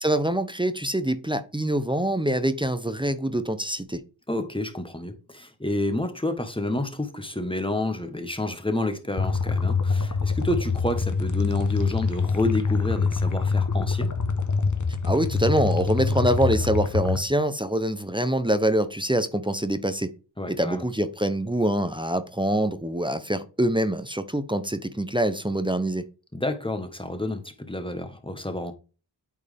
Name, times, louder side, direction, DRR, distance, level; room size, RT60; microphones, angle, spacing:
voice 1, 0.0-4.0 15.0-20.1 20.5-26.0, right 1 dB, 10° right, 0.8 m, -25 dB
voice 2, 4.3-14.1 20.4-20.8 26.3-28.7, left 1 dB, 10° left, 1.4 m, -29 dB
sound 1, 9.2-17.2, left 4 dB, 40° left, 1.1 m, -25 dB
8.7 x 4.5 x 3.5 m
cardioid pair, 45°, 47 cm